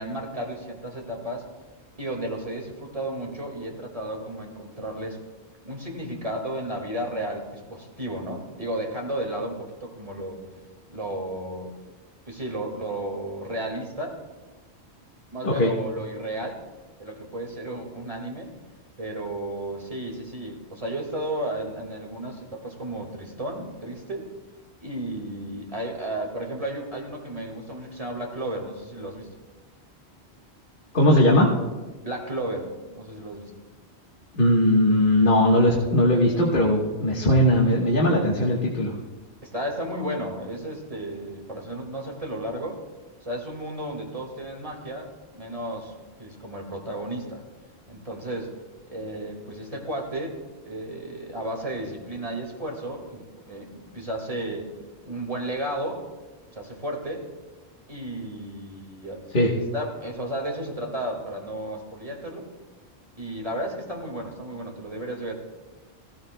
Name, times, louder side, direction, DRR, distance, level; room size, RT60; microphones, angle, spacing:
voice 1, 0.0-1.5 2.0-5.2 5.6-10.5 10.9-11.7 12.3-14.2 15.3-16.6 17.0-18.5 19.0-24.2 24.8-29.3 32.0-33.5 39.4-42.8 43.2-45.1 45.3-45.9 46.2-47.4 47.9-48.5 48.9-50.4 50.7-54.7 55.0-56.0 56.5-57.3 57.9-59.2 59.7-62.5 63.2-65.4, right 1 dB, 30° right, 1 dB, 2.0 m, -33 dB
voice 2, 30.9-31.5 34.3-38.9 59.3-59.5, left 1 dB, 50° left, -3 dB, 1.5 m, -19 dB
18.5 x 15.0 x 2.2 m, 1.2 s
omnidirectional pair, 1.1 m